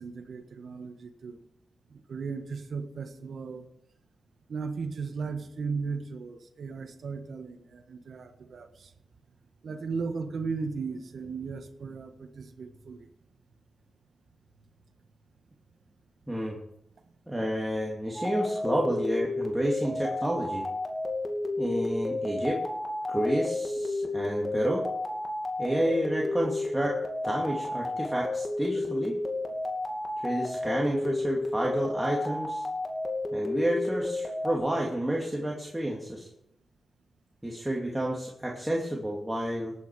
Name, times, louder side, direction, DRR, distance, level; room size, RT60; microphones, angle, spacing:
voice 1, 0.0-1.4 1.9-3.7 4.5-8.9 9.6-13.1, right 5 dB, 75° right, 8 dB, 1.4 m, -36 dB
voice 2, 17.3-20.6 21.6-22.6 23.1-24.8 25.6-27.0 27.2-29.2 30.2-32.6 33.3-36.3 37.4-39.7, right 1 dB, 10° right, -2 dB, 2.5 m, -30 dB
sound 1, 18.1-34.6, left 2 dB, 25° left, 2.6 m, -32 dB
18.5 x 8.8 x 4.8 m, 0.77 s
cardioid pair, 65°, 0 cm